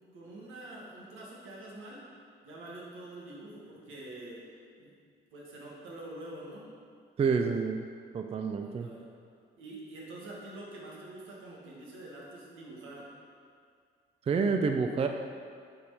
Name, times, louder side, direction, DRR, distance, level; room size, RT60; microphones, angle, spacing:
voice 1, 0.1-2.0 2.4-4.4 4.8-4.9 5.3-6.6 8.6-9.1 9.6-13.1, right 2 dB, 85° right, -4 dB, 1.5 m, -46 dB
voice 2, 7.2-7.9 8.1-8.9 14.3-15.1, right 5 dB, 30° right, 5 dB, 0.4 m, -28 dB
4.9 x 4.4 x 5.6 m, 2.2 s
cardioid pair, 90°, 20 cm